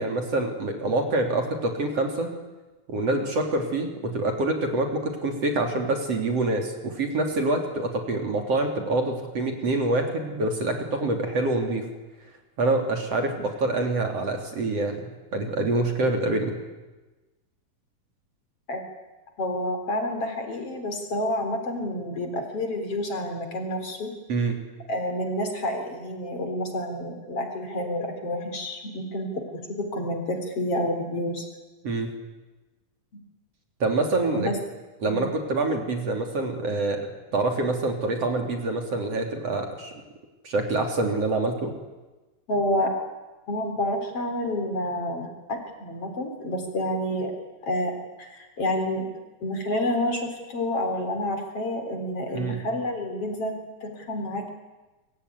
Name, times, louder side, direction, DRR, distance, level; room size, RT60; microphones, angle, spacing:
voice 1, 0.0-2.3 2.9-11.8 12.6-16.6 24.3-24.6 31.8-32.1 33.8-34.5 35.0-39.9 40.4-41.7 52.3-52.6, right 2 dB, 50° right, 4 dB, 4.2 m, -26 dB
voice 2, 19.4-24.1 24.9-31.5 34.3-34.6 35.0-35.2 42.5-42.9 43.5-47.3 47.6-49.1 49.4-54.5, left 1 dB, 45° left, 5 dB, 4.7 m, -29 dB
27.0 x 23.0 x 9.7 m, 1.2 s
omnidirectional pair, 3.8 m